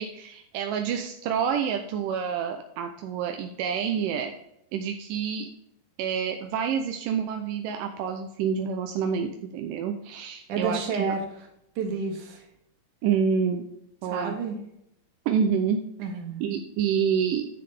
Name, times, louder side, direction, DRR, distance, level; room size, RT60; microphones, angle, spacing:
voice 1, 0.0-4.3 4.7-5.5 6.0-11.2 13.0-13.7 14.0-14.4 15.3-15.8 16.4-17.5, right 7 dB, 85° right, 4 dB, 2.2 m, -28 dB
voice 2, 10.5-11.2 11.8-12.4 14.1-14.6 16.0-16.4, right 4 dB, 65° right, 2 dB, 3.0 m, -30 dB
9.8 x 6.7 x 3.5 m, 0.77 s
omnidirectional pair, 4.0 m